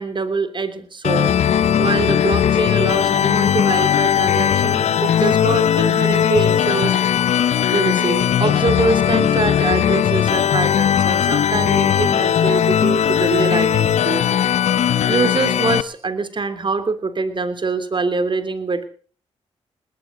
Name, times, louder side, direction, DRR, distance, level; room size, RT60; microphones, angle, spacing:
voice 1, 0.0-1.3 1.8-7.0 7.7-14.3 15.1-18.9, right 4 dB, 45° right, 12 dB, 3.1 m, -24 dB
sound 1, 1.0-15.8, left 9 dB, 75° left, 0.9 m, -18 dB
20.0 x 18.0 x 3.9 m, 0.41 s
cardioid pair, 60°, 12 cm